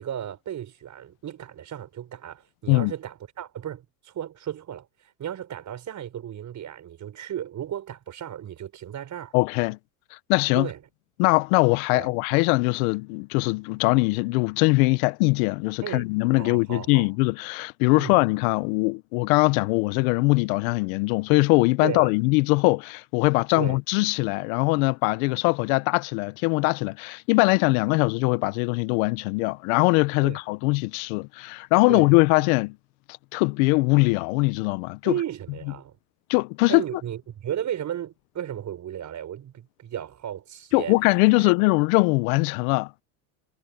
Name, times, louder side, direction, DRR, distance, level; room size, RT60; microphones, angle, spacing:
voice 1, 0.0-4.9 5.2-9.3 10.5-10.8 11.9-12.1 15.8-17.1 18.0-18.2 21.8-22.1 23.6-23.8 30.2-30.4 31.9-32.1 35.0-36.0 36.7-41.0 41.4-41.5, right 10 dB, 40° right, 6.0 m, -34 dB
voice 2, 9.3-9.8 10.1-10.7 11.2-32.7 33.3-35.1 36.3-36.8 40.7-43.0, left 26 dB, 70° left, 1.0 m, -22 dB
supercardioid pair, 100°, 44 cm